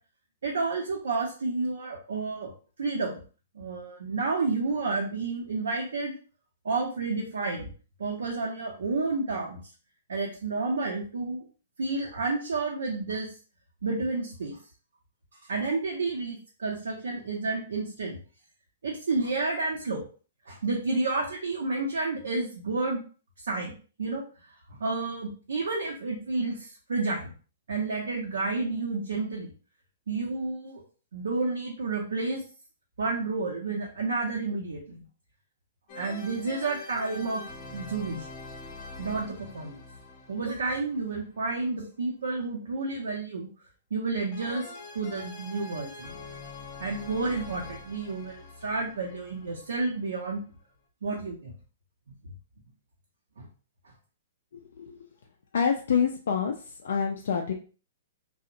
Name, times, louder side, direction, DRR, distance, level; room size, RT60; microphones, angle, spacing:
voice 1, 0.4-2.5 2.8-3.2 3.5-6.1 6.6-7.7 8.0-9.6 10.1-11.4 11.8-13.3 13.8-14.6 15.5-18.2 18.8-20.0 20.5-23.0 23.4-27.3 27.7-29.5 30.1-30.8 31.1-32.4 33.0-35.0 35.9-37.4 37.7-38.3 39.0-39.8 40.3-43.5 43.9-44.6 44.9-46.1 46.8-50.4 51.0-51.5 53.4-53.5, right 3 dB, 80° right, -2 dB, 0.6 m, -30 dB
sound 1, 35.9-41.8 44.3-50.1, left 3 dB, 40° left, 0.7 m, -45 dB
voice 2, 55.5-56.5 56.8-57.5, left 6 dB, 70° left, 2 dB, 0.3 m, -26 dB
2.7 x 2.0 x 2.5 m, 0.38 s
hypercardioid pair, 130°, 0 cm